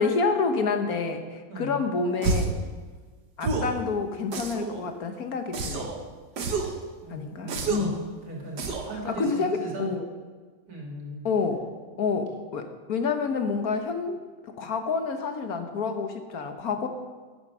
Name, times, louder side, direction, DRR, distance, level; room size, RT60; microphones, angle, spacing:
voice 1, 0.0-2.5 3.4-5.9 7.1-8.1 9.1-10.0 11.2-11.7 12.0-16.9, left 4 dB, 60° left, 7 dB, 1.4 m, -28 dB
sound 1, 2.2-2.6 3.4-3.8 4.3-4.8 5.5-6.0 6.4-6.8 7.5-8.0 8.6-9.0, right 3 dB, 75° right, 1.8 m, -28 dB
voice 2, 6.4-7.9 8.2-9.9 10.7-11.3, right 1 dB, 60° right, -1 dB, 3.1 m, -39 dB
12.0 x 9.8 x 6.1 m, 1.4 s
omnidirectional pair, 1.8 m